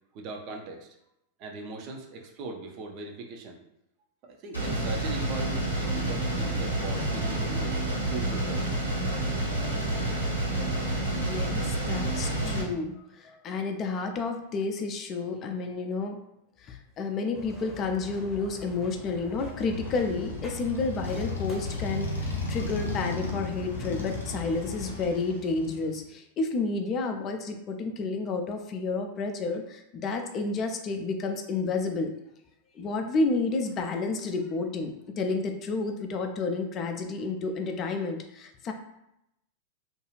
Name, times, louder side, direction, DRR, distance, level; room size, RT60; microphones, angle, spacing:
voice 1, 0.1-0.9 1.4-3.6 4.3-7.8 8.0-8.7, right 3 dB, 40° right, 2 dB, 0.5 m, -40 dB
sound 1, 4.5-12.6, right 1 dB, 90° right, 0.9 m, -29 dB
voice 2, 11.2-16.2 16.6-32.1 32.7-38.7, left 3 dB, 30° left, 4 dB, 0.4 m, -30 dB
sound 2, 17.3-24.9, left 3 dB, 10° left, 0.8 m, -44 dB
Motorcycle, 19.3-26.0, left 2 dB, 80° left, 0.5 m, -35 dB
2.5 x 2.3 x 3.1 m, 0.83 s
figure-of-eight pair, 90°, 0 cm